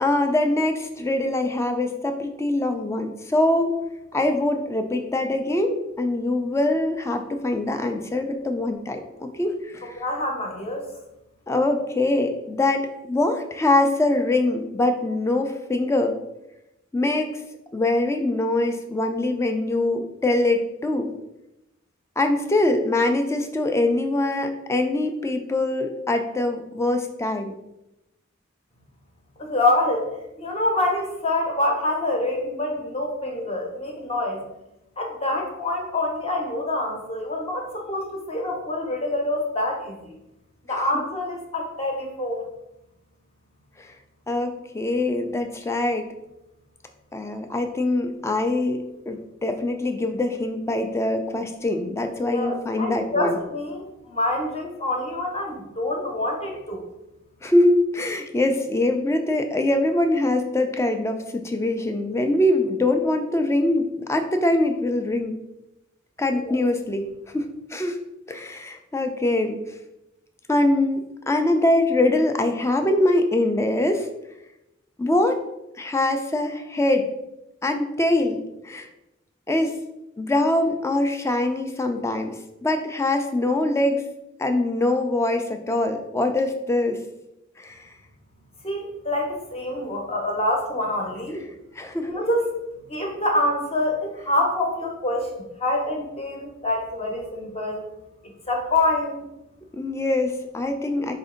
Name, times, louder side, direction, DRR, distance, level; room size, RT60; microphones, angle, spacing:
voice 1, 0.0-3.7 4.1-10.0 11.5-16.2 16.9-17.4 17.7-21.1 22.2-27.6 40.7-40.8 43.8-43.9 44.3-46.1 47.1-53.4 57.4-65.4 66.2-67.1 67.3-67.4 67.7-68.0 68.3-69.6 70.5-74.1 75.0-75.4 75.8-77.1 77.6-78.9 79.5-79.7 80.2-84.0 84.4-87.0 87.6-87.8 91.8-92.1 99.7-101.1, left 2 dB, 15° left, 6 dB, 0.3 m, -23 dB
voice 2, 9.8-10.8 29.4-30.1 30.4-34.4 35.0-40.1 40.7-42.5 52.2-56.8 66.4-66.6 88.6-91.4 92.0-92.5 92.9-97.8 98.5-99.3, left 1 dB, 30° left, 1 dB, 0.8 m, -26 dB
4.2 x 2.6 x 3.7 m, 0.89 s
head